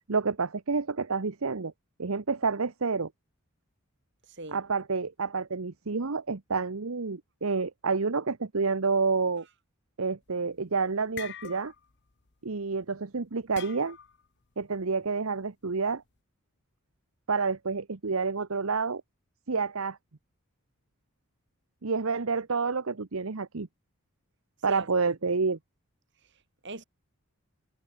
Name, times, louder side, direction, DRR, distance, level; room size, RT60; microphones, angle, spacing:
voice 1, 0.1-1.7 2.0-3.1 4.5-9.5 10.0-11.7 12.4-14.0 14.6-16.0 17.3-19.0 19.5-20.0 21.8-23.7 24.6-25.6, right 4 dB, 75° right, 0.9 m, -29 dB
voice 2, 4.3-4.6 24.7-25.1 26.2-26.8, right 2 dB, 55° right, 5.5 m, -43 dB
sound 1, 10.3-10.6 10.9-12.0 12.3-12.5 13.5-14.2, left 9 dB, 50° left, 1.0 m, -43 dB
head